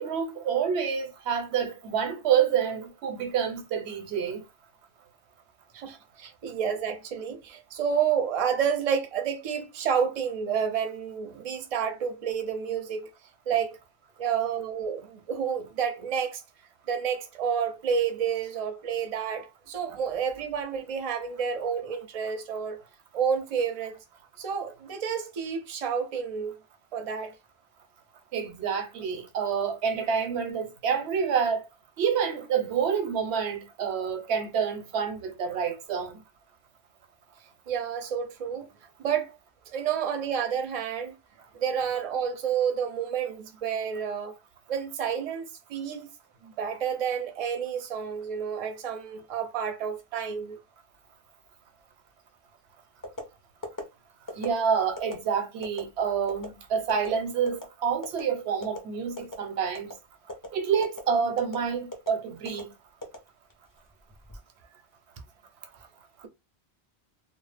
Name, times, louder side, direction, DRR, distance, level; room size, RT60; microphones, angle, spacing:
voice 1, 0.0-4.4 28.3-31.6 32.0-36.2 54.4-59.9 60.5-62.7, right 7 dB, 90° right, 0.9 m, -28 dB
voice 2, 5.7-13.1 13.5-13.8 14.2-16.4 16.9-22.8 23.1-24.0 24.4-26.5 26.9-27.3 37.7-38.7 39.0-39.3 39.7-41.2 41.6-44.3 44.7-46.1 46.4-50.6, right 7 dB, 45° right, 0.5 m, -30 dB
sound 1, 53.0-53.3 53.6-53.8 54.3-54.5 55.0-55.1 55.6-55.8 56.3-56.5 56.9-57.1 57.5-57.7 58.0-58.2 58.6-58.8 59.2-59.4 59.7-59.9 60.3-60.5 60.8-61.0 61.4-61.6 61.9-62.1 62.4-62.6 63.0-63.7 64.1-64.4, left 1 dB, 30° left, 0.4 m, -36 dB
2.1 x 2.0 x 3.2 m
omnidirectional pair, 1.1 m